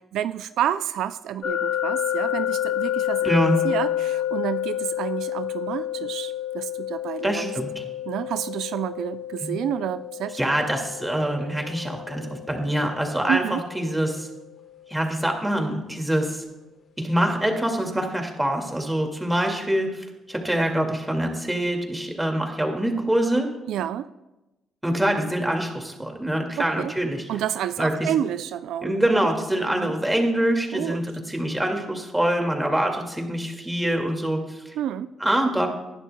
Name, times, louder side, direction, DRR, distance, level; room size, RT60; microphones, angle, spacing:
voice 1, 0.1-3.3 3.6-7.5 8.1-10.4 13.3-13.6 23.7-24.1 26.6-26.9 27.3-29.0 29.7-29.9 30.7-31.0 34.8-35.1, right 10 dB, 80° right, 12 dB, 0.3 m, -29 dB
sound 1, 1.4-14.3, left 12 dB, 60° left, 1.4 m, -29 dB
voice 2, 3.2-3.6 7.2-7.8 9.4-9.6 10.3-14.3 14.9-16.4 17.0-23.5 24.8-27.3 27.8-28.1 28.8-34.6 35.2-35.7, right 1 dB, 10° right, 2 dB, 2.2 m, -25 dB
19.0 x 11.0 x 2.3 m, 1.0 s
cardioid pair, 90°, 0 cm